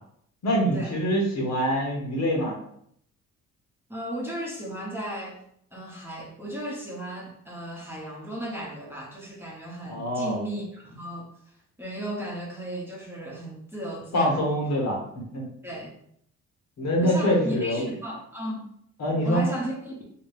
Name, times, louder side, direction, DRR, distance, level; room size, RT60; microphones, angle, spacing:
voice 1, 0.4-2.6 9.9-10.4 14.1-15.4 16.8-17.9 19.0-19.4, equal, 60° left, -1 dB, 1.2 m, -25 dB
voice 2, 3.9-5.4 5.7-11.3 11.8-14.4 15.6-15.9 17.0-18.7 19.2-19.9, equal, 10° right, -4 dB, 1.0 m, -35 dB
3.0 x 2.9 x 3.3 m, 0.70 s
cardioid pair, 90°, 30 cm